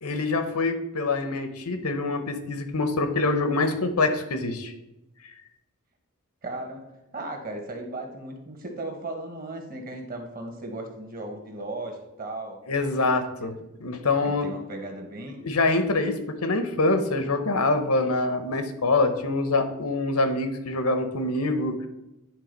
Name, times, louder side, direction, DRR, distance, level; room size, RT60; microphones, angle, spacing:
voice 1, 0.0-4.7 12.7-14.5 15.4-21.9, left 2 dB, 90° left, 8 dB, 1.0 m, -25 dB
voice 2, 6.4-6.8 7.1-12.6 14.2-15.4, right 2 dB, 40° right, 4 dB, 1.4 m, -36 dB
9.9 x 3.8 x 5.2 m, 0.92 s
head